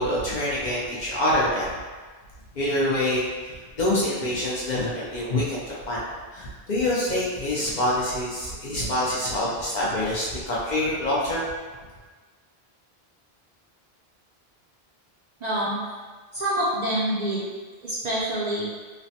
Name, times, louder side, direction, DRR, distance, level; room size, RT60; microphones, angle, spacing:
voice 1, 0.0-1.7 2.6-6.0 6.3-11.4, left 1 dB, 55° left, -6 dB, 0.6 m, -26 dB
voice 2, 15.4-15.8 16.3-17.5 17.8-18.7, right 1 dB, 55° right, -7 dB, 0.5 m, -26 dB
3.2 x 2.0 x 2.7 m, 1.4 s
omnidirectional pair, 1.1 m